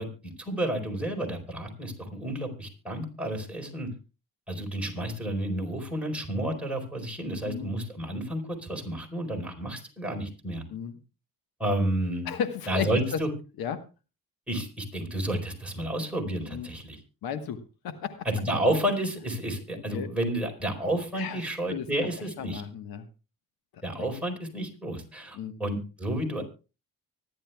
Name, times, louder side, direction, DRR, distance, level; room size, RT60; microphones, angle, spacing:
voice 1, 0.0-3.9 4.5-10.6 11.6-12.3 12.7-13.3 14.5-17.0 18.2-22.6 23.8-26.4, right 1 dB, 5° right, 0 dB, 4.4 m, -31 dB
voice 2, 12.2-13.2 13.6-13.8 16.5-16.7 17.2-18.2 19.9-20.1 21.1-21.4 21.7-21.9 22.4-23.1 25.3-25.5, left 8 dB, 90° left, 9 dB, 1.4 m, -34 dB
24.5 x 11.0 x 2.3 m, 0.32 s
cardioid pair, 100°, 35 cm